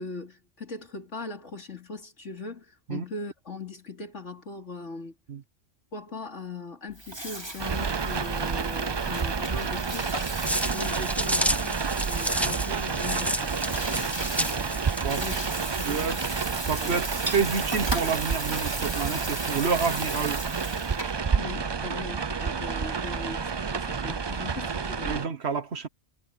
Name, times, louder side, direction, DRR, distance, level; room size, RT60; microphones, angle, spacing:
voice 1, 0.0-5.1 5.9-10.1 10.6-14.8 15.1-16.3 16.7-17.0 21.3-25.2, left 3 dB, 85° left, 3.6 m, -40 dB
Water tap faucet / Sink (filling or washing), 6.9-21.2, right 1 dB, 20° right, 3.4 m, -37 dB
sound 1, 7.6-25.3, right 5 dB, 35° right, 0.4 m, -30 dB
sound 2, 10.4-15.9, equal, ahead, 1.0 m, -31 dB
voice 2, 16.7-20.4 25.0-25.9, right 5 dB, 65° right, 1.3 m, -29 dB
omnidirectional pair, 1.2 m